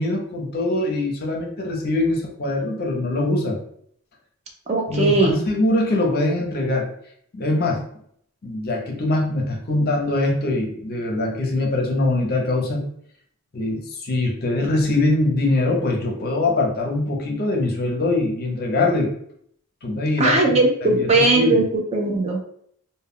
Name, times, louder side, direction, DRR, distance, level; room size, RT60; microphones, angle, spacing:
voice 1, 0.0-3.6 4.9-6.9 7.3-7.8 8.4-12.8 13.5-19.1 19.8-21.7, left 2 dB, 45° left, 0 dB, 0.6 m, -23 dB
voice 2, 4.7-5.4 20.2-22.5, right 2 dB, 30° right, 1 dB, 0.4 m, -19 dB
2.2 x 2.1 x 3.5 m, 0.67 s
head